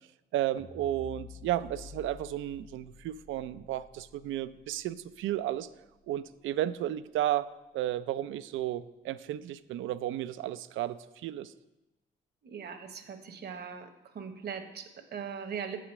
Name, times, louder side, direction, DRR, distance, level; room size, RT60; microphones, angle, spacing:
voice 1, 0.3-5.7 6.1-7.5 7.7-11.5, right 13 dB, 80° right, 14 dB, 0.4 m, -33 dB
sound 1, 0.6-6.9, left 6 dB, 25° left, 0.4 m, -51 dB
voice 2, 12.4-15.8, right 7 dB, 55° right, 7 dB, 1.0 m, -40 dB
7.4 x 5.0 x 7.1 m, 1.0 s
cardioid pair, 90°, 20 cm